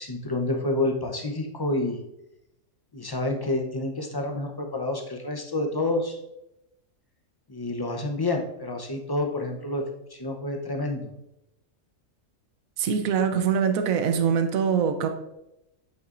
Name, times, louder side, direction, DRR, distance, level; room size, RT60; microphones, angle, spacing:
voice 1, 0.0-2.0 2.9-6.2 7.5-9.8 10.1-11.1, left 2 dB, 25° left, 3 dB, 0.6 m, -28 dB
voice 2, 12.8-15.1, right 7 dB, 80° right, 7 dB, 1.1 m, -23 dB
8.5 x 7.9 x 2.5 m, 0.87 s
omnidirectional pair, 1.5 m